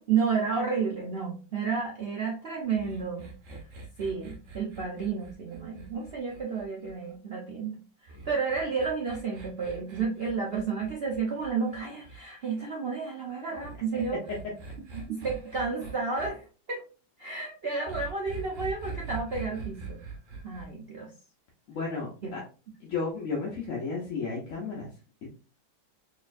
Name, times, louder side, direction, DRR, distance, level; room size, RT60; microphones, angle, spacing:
voice 1, 0.0-3.3 4.0-7.8 8.2-14.2 14.9-16.8 17.2-20.0 20.4-21.1 22.2-22.3, right 5 dB, 80° right, -2 dB, 0.5 m, -31 dB
sound 1, 2.7-7.1 8.1-12.2 13.5-16.3 17.9-20.7, right 4 dB, 55° right, 0.9 m, -43 dB
voice 2, 21.7-22.4 22.8-24.9, left 4 dB, 55° left, -2 dB, 1.0 m, -33 dB
4.1 x 3.2 x 2.5 m, 0.35 s
omnidirectional pair, 2.0 m